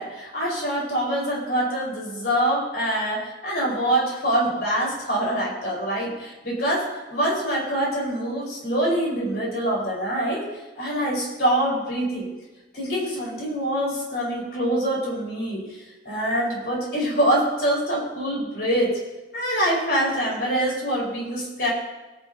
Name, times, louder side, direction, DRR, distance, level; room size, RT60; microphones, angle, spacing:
voice 1, 0.0-10.4 10.8-12.3 12.7-15.7 16.0-19.0 19.3-21.7, right 1 dB, 60° left, -4 dB, 4.7 m, -25 dB
23.0 x 9.7 x 2.8 m, 1.1 s
head